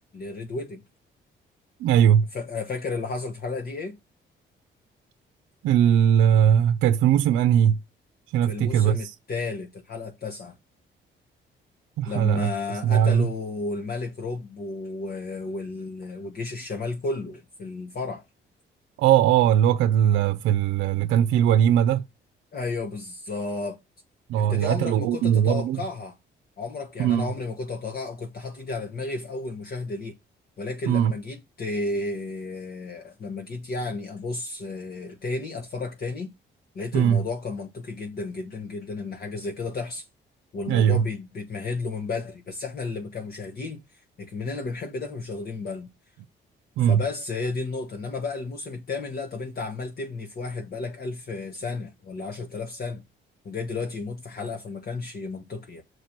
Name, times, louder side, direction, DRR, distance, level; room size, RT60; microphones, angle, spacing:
voice 1, 0.1-0.8 2.3-4.0 8.5-10.5 12.0-18.2 22.5-23.8 24.4-26.2 26.6-30.2 30.6-36.3 36.7-40.0 40.5-43.8 44.2-45.9 46.8-53.0 53.4-55.8, left 3 dB, 50° left, 1.3 m, -32 dB
voice 2, 1.8-2.3 5.6-7.8 8.3-9.1 12.0-12.5 12.8-13.3 19.0-22.0 24.3-25.8 27.0-27.3 30.9-31.1 36.9-37.2 40.7-41.0 46.8-47.0, right 10 dB, 90° right, 0.5 m, -20 dB
6.5 x 4.8 x 5.9 m
cardioid pair, 90°, 20 cm